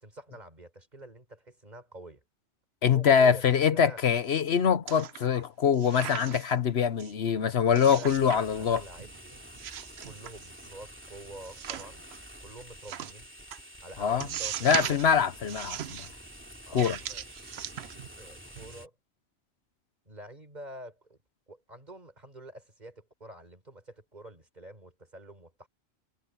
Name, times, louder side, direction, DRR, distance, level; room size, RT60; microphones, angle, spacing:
voice 1, 0.0-2.2 2.9-4.0 7.6-9.4 10.0-12.0 12.4-13.3 13.8-15.0 16.7-17.2 18.2-18.9 20.1-21.2 21.5-25.7, right 1 dB, 40° right, 4.4 m, -47 dB
voice 2, 2.8-8.8 14.0-14.3 14.6-16.1 16.7-17.0, left 7 dB, 65° left, 1.1 m, -24 dB
sound 1, 4.9-5.4 5.7-6.6 7.0-7.1 7.7-8.4 8.7-9.2 9.5-10.7 11.4-12.2 12.8-13.1 13.5-13.6 14.2-15.1 15.5-16.1 16.7-18.2 18.5-18.7, right 10 dB, 70° right, 0.9 m, -38 dB
sound 2, 8.1-18.9, equal, 10° right, 2.7 m, -49 dB
omnidirectional pair, 1.2 m